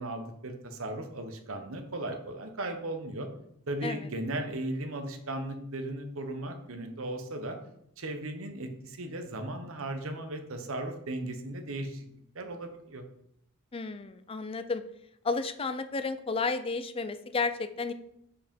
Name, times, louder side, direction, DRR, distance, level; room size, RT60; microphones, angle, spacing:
voice 1, 0.0-3.3 3.7-7.6 8.0-12.1 12.3-13.0, right 1 dB, 65° right, 6 dB, 1.0 m, -36 dB
voice 2, 13.7-14.8 15.2-17.9, left 4 dB, 25° left, 10 dB, 0.4 m, -32 dB
5.0 x 4.9 x 5.2 m, 0.74 s
head